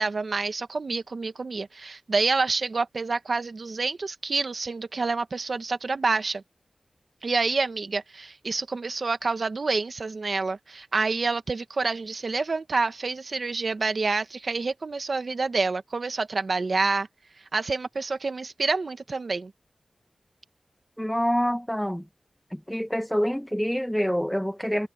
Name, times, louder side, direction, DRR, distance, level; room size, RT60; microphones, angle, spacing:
voice 1, 0.0-6.4 7.2-17.1 17.5-19.5, right 3 dB, 65° right, 1.3 m, -28 dB
voice 2, 21.0-22.0 22.5-24.9, equal, 5° left, 1.3 m, -26 dB
wide cardioid pair, 85°, 0 cm